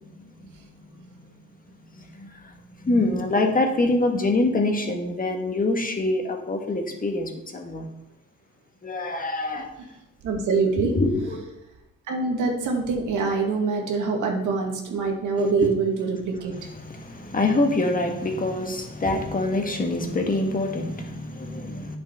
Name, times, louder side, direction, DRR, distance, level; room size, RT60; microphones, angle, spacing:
voice 1, 2.0-7.9 8.8-9.7 10.7-11.4 15.3-15.7 16.5-22.0, left 2 dB, 30° left, 3 dB, 1.8 m, -25 dB
voice 2, 10.2-10.9 12.1-16.5, right 4 dB, 80° right, 1 dB, 2.1 m, -24 dB
8.8 x 6.9 x 5.7 m, 0.85 s
cardioid pair, 90°, 30 cm